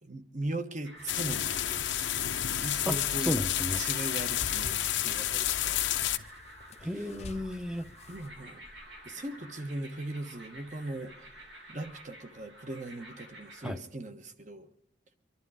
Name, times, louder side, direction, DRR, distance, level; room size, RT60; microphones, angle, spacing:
voice 1, 0.0-2.2 2.5-3.4 3.8-5.8 6.9-7.1 8.1-8.6 9.0-11.3 11.7-14.7, right 2 dB, 40° right, 1.3 m, -39 dB
sound 1, 0.8-13.7, equal, 75° right, 3.5 m, -51 dB
sound 2, 1.0-8.3, left 2 dB, 35° left, 0.6 m, -50 dB
sound 3, 1.1-6.2, left 11 dB, 85° left, 0.9 m, -30 dB
voice 2, 2.9-3.8 6.8-7.9 13.6-13.8, equal, 5° right, 0.8 m, -33 dB
24.5 x 11.5 x 5.0 m
head